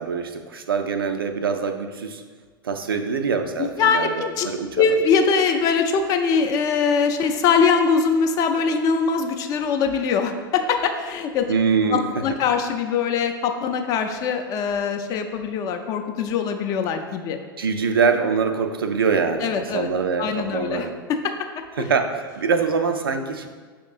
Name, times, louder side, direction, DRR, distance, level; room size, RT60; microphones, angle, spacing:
voice 1, 0.0-2.2 2.6-4.7 11.5-12.2 17.6-20.9 21.8-23.5, right 5 dB, 75° right, 6 dB, 0.4 m, -24 dB
voice 2, 3.6-4.5 4.7-11.5 11.9-17.4 19.4-19.9 20.2-21.3 21.8-21.9, left 5 dB, 30° left, 6 dB, 0.4 m, -22 dB
5.8 x 3.6 x 2.4 m, 1.5 s
figure-of-eight pair, 95°, 12 cm